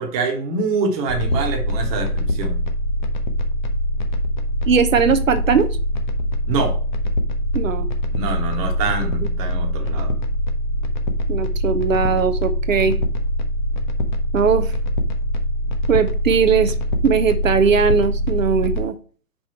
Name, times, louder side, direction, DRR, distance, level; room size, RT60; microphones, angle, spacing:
voice 1, 0.0-2.6 6.5-6.8 8.1-10.1, right 3 dB, 25° right, 2 dB, 1.4 m, -25 dB
sound 1, 1.1-18.9, equal, 30° left, 0.8 m, -23 dB
voice 2, 4.7-5.7 7.5-7.9 11.3-13.0 14.3-14.7 15.9-16.7 17.0-18.9, right 6 dB, 55° right, 11 dB, 0.8 m, -19 dB
5.4 x 5.0 x 4.5 m, 0.40 s
figure-of-eight pair, 130°, 47 cm